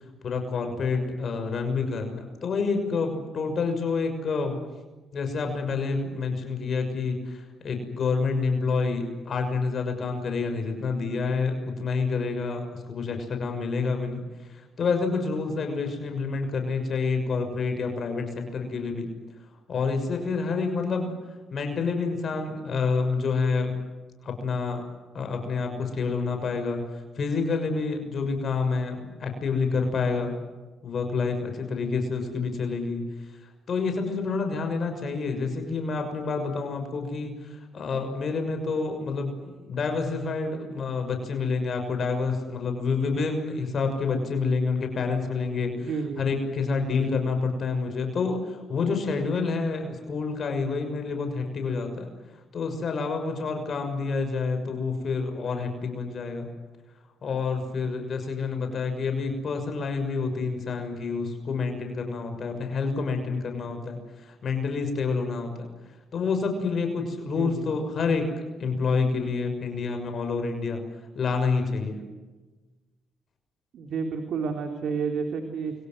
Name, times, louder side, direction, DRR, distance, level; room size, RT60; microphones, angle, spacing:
voice 1, 0.2-4.6 5.1-14.2 14.5-19.1 19.7-21.1 21.5-23.8 24.2-24.8 25.1-30.4 30.8-33.2 33.7-45.9 46.2-52.1 52.5-56.5 57.2-65.7 66.1-70.8 71.1-72.0, left 4 dB, 55° left, 6 dB, 6.3 m, -28 dB
voice 2, 45.8-46.2 67.2-67.7 73.7-75.7, right 5 dB, 65° right, 5 dB, 3.4 m, -30 dB
29.5 x 24.5 x 7.8 m, 1.2 s
cardioid pair, 90°, 0 cm